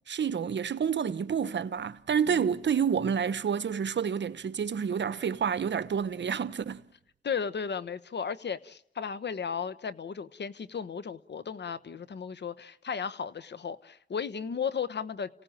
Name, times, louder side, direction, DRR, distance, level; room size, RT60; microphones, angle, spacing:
voice 1, 0.1-6.8, right 7 dB, 70° right, 1.0 m, -29 dB
voice 2, 7.2-15.3, left 6 dB, 65° left, 1.2 m, -35 dB
30.0 x 17.5 x 8.9 m
cardioid pair, 60°, 19 cm